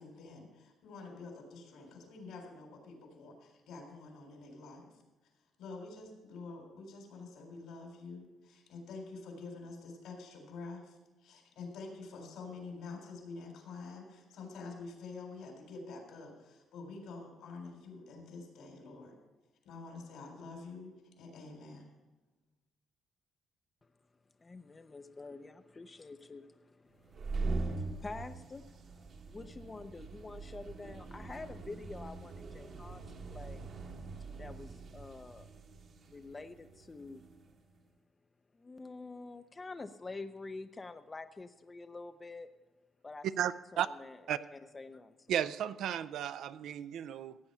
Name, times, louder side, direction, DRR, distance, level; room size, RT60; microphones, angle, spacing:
voice 1, 0.0-4.9 5.6-19.1 19.6-20.9 21.2-21.9, left 3 dB, 85° left, 2 dB, 3.9 m, -47 dB
voice 2, 24.4-33.0 33.3-33.6 34.4-35.5 36.1-37.2 38.5-42.5 43.0-43.3 43.7-45.5, left 3 dB, 25° left, 9 dB, 0.5 m, -47 dB
sound 1, 27.0-37.5, right 3 dB, 55° right, 1.4 m, -42 dB
voice 3, 43.4-43.9 44.3-44.4 45.3-47.4, right 10 dB, 75° right, 14 dB, 0.5 m, -34 dB
16.0 x 8.8 x 5.6 m, 1.1 s
cardioid pair, 115°, 0 cm